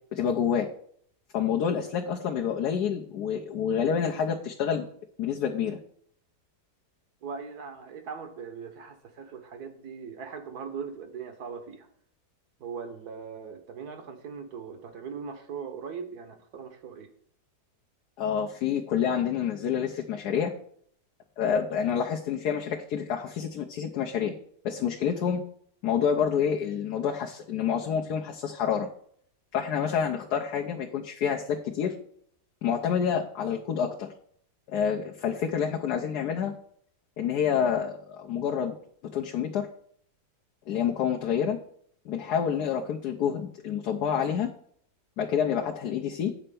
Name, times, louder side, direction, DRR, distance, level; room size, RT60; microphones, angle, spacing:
voice 1, 0.1-0.7 1.3-4.9 5.2-5.8 18.2-20.5 21.4-24.3 24.6-25.4 25.8-28.9 29.5-31.9 32.6-34.1 34.7-36.5 37.2-38.7 39.1-39.7 40.7-41.6 42.0-44.5 45.2-46.3, left 7 dB, 70° left, 1 dB, 1.3 m, -28 dB
voice 2, 7.2-11.9 12.6-17.1, right 6 dB, 65° right, 7 dB, 1.6 m, -40 dB
8.8 x 4.4 x 6.9 m, 0.63 s
omnidirectional pair, 1.8 m